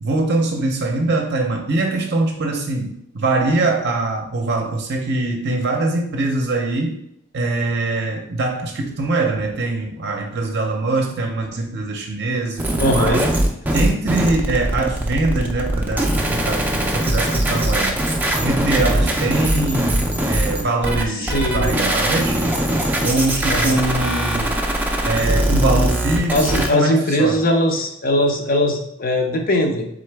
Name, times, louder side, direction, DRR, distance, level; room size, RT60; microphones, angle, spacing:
voice 1, 0.0-7.0 7.3-13.3 13.7-17.9 18.4-22.4 23.0-24.6 25.0-27.4, right 2 dB, 50° right, 1 dB, 0.6 m, -22 dB
sound 1, 12.6-26.7, right 1 dB, 10° right, 0.4 m, -21 dB
voice 2, 12.8-13.2 21.2-21.8 23.5-23.8 26.3-29.9, left 1 dB, 40° left, 3 dB, 0.7 m, -20 dB
3.8 x 3.7 x 3.4 m, 0.72 s
head